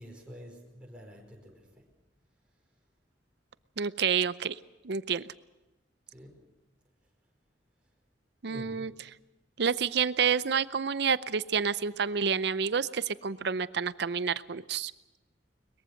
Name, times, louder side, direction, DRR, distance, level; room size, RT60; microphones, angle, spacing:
voice 1, 0.0-1.9 6.1-6.4 8.4-8.9, equal, 5° right, -2 dB, 5.1 m, -48 dB
voice 2, 3.8-4.6 4.8-5.2 8.4-8.9 9.6-14.9, right 6 dB, 65° right, 16 dB, 0.6 m, -29 dB
22.5 x 21.5 x 6.5 m, 1.1 s
head